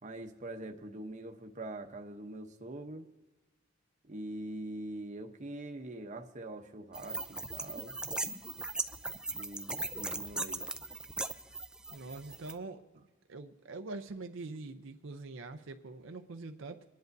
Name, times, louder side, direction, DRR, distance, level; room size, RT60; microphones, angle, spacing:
voice 1, 0.0-3.1 4.0-8.0 9.3-10.6, right 1 dB, 40° right, 4 dB, 0.8 m, -43 dB
sound 1, 6.9-12.5, right 2 dB, 5° right, 0.4 m, -38 dB
voice 2, 11.9-13.0 13.3-16.8, right 3 dB, 80° right, 6 dB, 0.6 m, -44 dB
24.5 x 10.5 x 2.7 m, 1.2 s
head